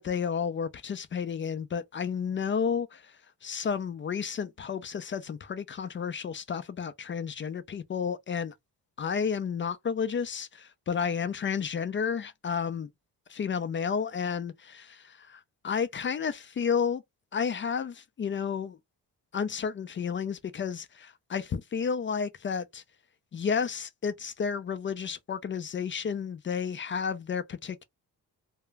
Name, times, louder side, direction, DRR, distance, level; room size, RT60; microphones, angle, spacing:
voice 1, 0.0-8.5 9.0-12.9 13.3-17.0 17.3-18.8 19.3-22.8 23.3-27.8, left 6 dB, 35° left, 0.4 m, -31 dB
2.2 x 2.0 x 3.2 m
cardioid pair, 90°, 38 cm